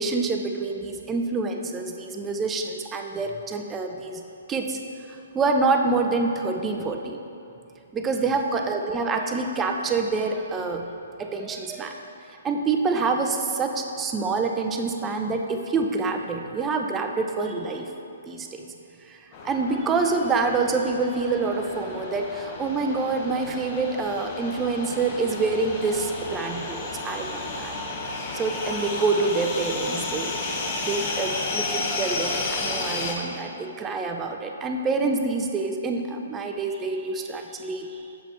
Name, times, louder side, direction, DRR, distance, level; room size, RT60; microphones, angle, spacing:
voice 1, 0.0-4.2 4.5-4.8 5.1-7.2 7.9-10.9 11.2-12.0 12.4-17.9 18.3-18.6 19.1-19.2 19.4-27.8 28.3-38.0, right 3 dB, 15° right, 4 dB, 0.4 m, -26 dB
sound 1, 19.3-33.1, left 3 dB, 35° left, 0.8 m, -32 dB
6.7 x 4.1 x 4.5 m, 2.6 s
hypercardioid pair, 130°, 0 cm